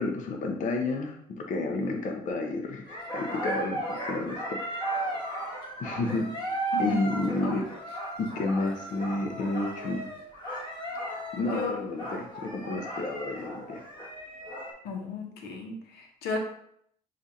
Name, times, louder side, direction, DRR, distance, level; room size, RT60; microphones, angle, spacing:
voice 1, 0.0-4.6 5.8-6.3 6.8-7.6 8.2-10.1 11.3-13.8, left 2 dB, 55° left, 2 dB, 0.7 m, -31 dB
sound 1, 2.9-14.7, right 1 dB, 30° left, 1.3 m, -35 dB
voice 2, 11.4-11.8 14.8-16.4, left 3 dB, 90° left, 2 dB, 0.9 m, -34 dB
6.6 x 2.5 x 2.7 m, 0.68 s
cardioid pair, 100°, 16 cm